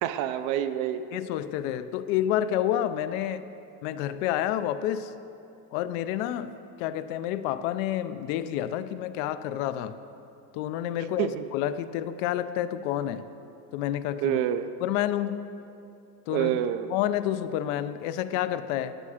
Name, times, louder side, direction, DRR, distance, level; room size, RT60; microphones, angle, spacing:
voice 1, 0.0-1.0 11.2-11.4 14.2-14.7 16.3-16.9, right 10 dB, 45° right, 11 dB, 0.5 m, -27 dB
voice 2, 1.1-3.5 3.8-5.1 5.7-6.5 6.8-9.9 10.5-13.3 13.7-14.4 14.8-15.4 16.3-16.6 16.9-19.0, left 11 dB, 60° left, 12 dB, 0.6 m, -29 dB
14.0 x 9.6 x 5.0 m, 2.7 s
cardioid pair, 170°, 43 cm